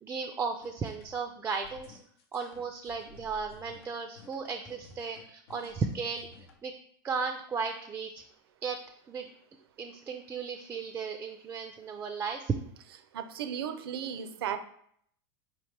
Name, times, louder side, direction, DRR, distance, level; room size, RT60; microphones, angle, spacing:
voice 1, 0.0-2.0 2.3-6.3 6.6-6.7 7.0-8.2 8.6-8.8 9.1-9.3 9.8-12.5, right 5 dB, 15° right, 5 dB, 0.3 m, -35 dB
sound 1, 0.6-6.6, left 4 dB, 80° left, 0.7 m, -54 dB
voice 2, 13.1-14.6, right 9 dB, 85° right, 9 dB, 0.5 m, -35 dB
5.0 x 3.0 x 3.2 m, 0.65 s
supercardioid pair, 125°, 12 cm